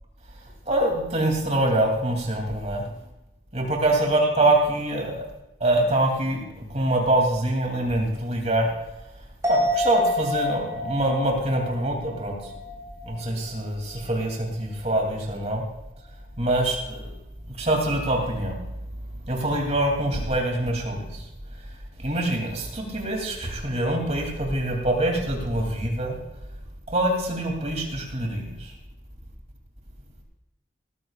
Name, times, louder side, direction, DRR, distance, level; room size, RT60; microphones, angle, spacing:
voice 1, 0.7-2.9 3.5-5.2 5.6-8.7 9.5-12.5 13.0-15.6 16.4-17.0 17.6-18.6 19.2-21.3 22.0-26.2 26.9-28.7, right 1 dB, 35° right, 1 dB, 3.0 m, -24 dB
sound 1, 9.4-13.1 13.5-13.6, left 1 dB, 15° right, 4.1 m, -28 dB
19.0 x 14.0 x 2.5 m, 0.93 s
head